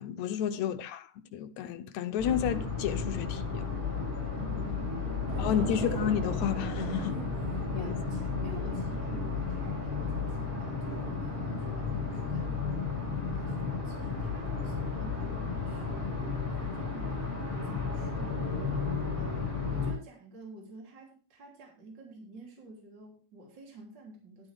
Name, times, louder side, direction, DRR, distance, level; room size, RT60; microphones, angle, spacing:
voice 1, 0.0-3.7 5.4-7.2 7.7-8.0, left 9 dB, 75° left, 1.8 m, -31 dB
sound 1, 2.2-19.9, left 4 dB, 5° left, 4.1 m, -33 dB
voice 2, 4.3-5.8 6.9-16.1 16.5-17.2 17.6-18.5 19.2-19.4 19.7-24.5, right 2 dB, 35° right, 3.6 m, -50 dB
Train / Subway metro underground, 5.3-14.7, right 5 dB, 65° right, 1.2 m, -42 dB
12.0 x 12.0 x 3.5 m
omnidirectional pair, 3.8 m